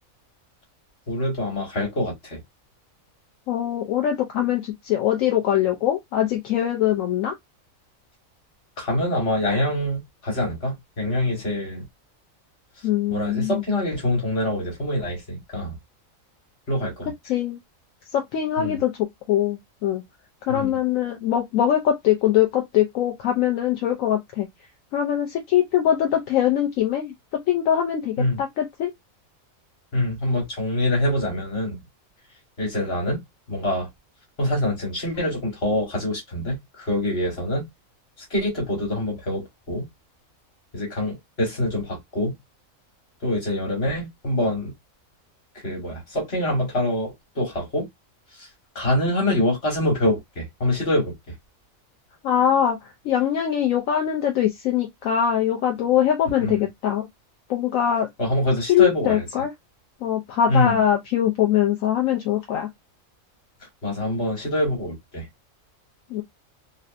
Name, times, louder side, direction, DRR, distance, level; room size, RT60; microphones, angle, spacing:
voice 1, 1.1-2.4 8.8-11.8 13.1-15.8 16.7-17.1 18.6-18.8 20.5-20.8 28.2-28.4 29.9-31.8 32.6-33.2 33.5-33.9 34.4-37.6 38.3-39.9 40.7-42.3 43.2-44.7 45.6-47.9 48.4-48.5 48.7-51.1 56.4-56.7 58.2-59.2 60.5-60.8 63.8-65.2, left 1 dB, 50° left, 1.7 m, -25 dB
voice 2, 3.5-7.3 12.8-13.6 17.3-17.6 18.1-18.9 19.3-20.0 20.5-24.5 24.9-27.1 27.5-28.9 52.2-52.8 53.0-57.1 57.5-58.1 58.7-59.5 60.0-62.7 66.1-66.2, left 10 dB, 75° left, 1.0 m, -22 dB
3.2 x 2.6 x 2.4 m
omnidirectional pair, 1.4 m